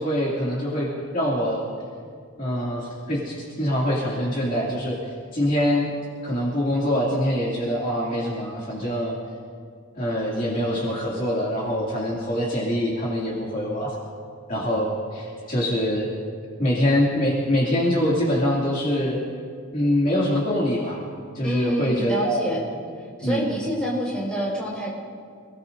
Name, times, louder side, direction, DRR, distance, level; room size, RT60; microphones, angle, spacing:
voice 1, 0.0-1.7 2.4-5.0 5.3-5.9 6.2-9.1 9.9-13.9 14.5-16.1 16.6-19.2 19.7-21.0 21.3-22.5 23.2-23.5, equal, 40° left, -6 dB, 2.6 m, -24 dB
voice 2, 21.4-22.6 23.2-24.9, right 1 dB, 5° left, -5 dB, 4.9 m, -27 dB
28.5 x 18.5 x 2.7 m, 2.1 s
head